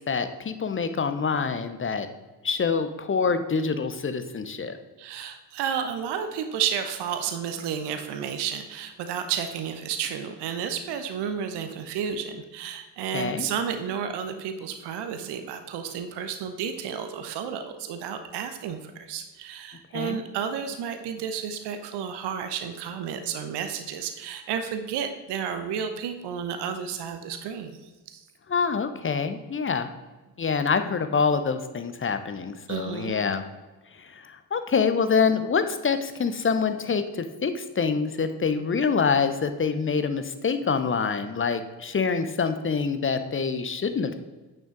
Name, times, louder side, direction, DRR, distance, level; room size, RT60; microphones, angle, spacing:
voice 1, 0.1-2.1 2.4-4.8 13.1-13.5 19.9-20.2 28.5-29.9 30.4-33.4 34.0-44.1, left 5 dB, 25° left, 10 dB, 0.9 m, -26 dB
voice 2, 5.0-27.8 28.1-28.2 32.7-33.2, right 7 dB, 55° right, 8 dB, 1.0 m, -32 dB
8.6 x 6.4 x 3.9 m, 1.2 s
figure-of-eight pair, 45°, 48 cm